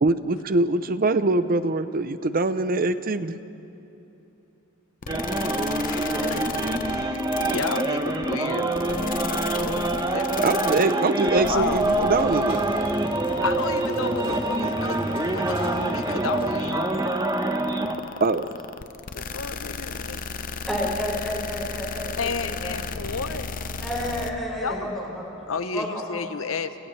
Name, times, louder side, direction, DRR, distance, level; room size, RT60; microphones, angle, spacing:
voice 1, 0.0-3.4 10.4-12.6 18.2-18.5, right 3 dB, 45° right, 12 dB, 0.7 m, -23 dB
sound 1, 5.0-24.3, left 5 dB, 45° left, 0.8 m, -34 dB
sound 2, 5.1-18.0, right 2 dB, 20° right, 1.0 m, -25 dB
voice 2, 5.8-6.4 6.8-12.3 13.4-17.0 19.1-20.2 22.2-23.5 24.6-24.9 25.5-26.9, left 4 dB, 80° left, 11 dB, 0.9 m, -33 dB
sound 3, 11.4-16.8, left 1 dB, 25° left, 2.6 m, -38 dB
voice 3, 20.7-22.8 23.8-25.5 25.7-26.3, equal, ahead, -5 dB, 5.2 m, -31 dB
30.0 x 28.5 x 3.3 m, 2.9 s
head